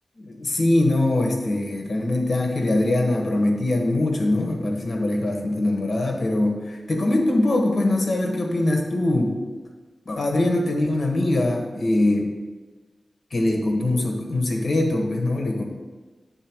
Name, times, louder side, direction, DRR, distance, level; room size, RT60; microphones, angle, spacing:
voice 1, 0.2-9.4 10.0-12.3 13.3-15.6, left 1 dB, 65° left, 1 dB, 1.4 m, -22 dB
8.9 x 4.2 x 6.2 m, 1.3 s
wide cardioid pair, 90°, 0 cm